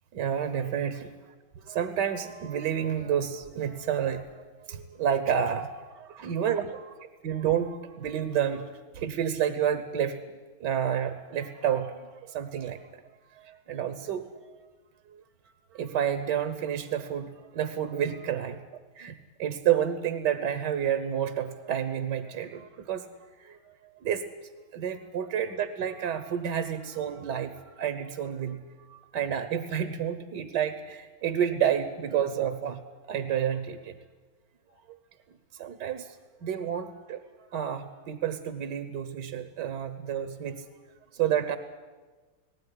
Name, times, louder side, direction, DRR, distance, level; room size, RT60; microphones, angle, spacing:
voice 1, 0.1-0.9 1.5-6.9 7.2-10.2 10.6-12.9 13.3-14.6 15.1-18.6 18.9-23.1 23.4-23.6 24.0-24.3 24.7-32.8 33.1-34.0 34.7-34.8 35.3-36.2 36.4-40.6 41.1-41.6, right 9 dB, 60° right, 11 dB, 1.5 m, -30 dB
19.0 x 17.5 x 9.9 m, 1.3 s
omnidirectional pair, 2.3 m